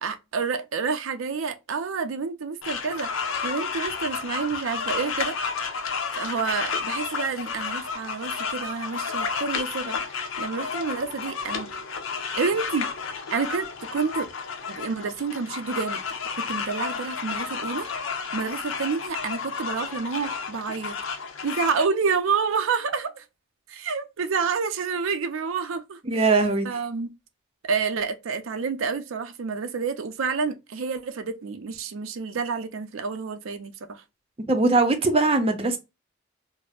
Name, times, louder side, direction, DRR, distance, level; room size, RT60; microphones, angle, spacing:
voice 1, 0.0-3.1 3.4-5.4 6.1-11.7 12.3-12.9 13.3-14.3 14.7-16.0 16.3-17.9 18.3-20.9 21.4-23.2 23.7-26.3 26.6-27.1 27.6-34.0, right 5 dB, 85° right, 0.5 m, -29 dB
sound 1, 2.6-21.8, left 5 dB, 80° left, 0.6 m, -31 dB
voice 2, 26.1-26.7 34.5-35.8, right 3 dB, 30° right, 0.5 m, -21 dB
4.1 x 2.0 x 2.3 m
head